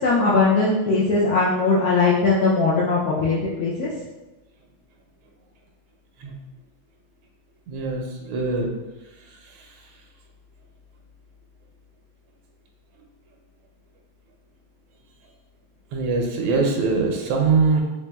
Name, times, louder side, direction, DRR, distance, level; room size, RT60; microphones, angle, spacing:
voice 1, 0.0-3.9, left 3 dB, 90° left, -6 dB, 0.8 m, -20 dB
voice 2, 7.7-8.7 15.9-17.8, right 4 dB, 90° right, 1 dB, 1.4 m, -22 dB
4.1 x 3.1 x 2.2 m, 1.1 s
omnidirectional pair, 2.2 m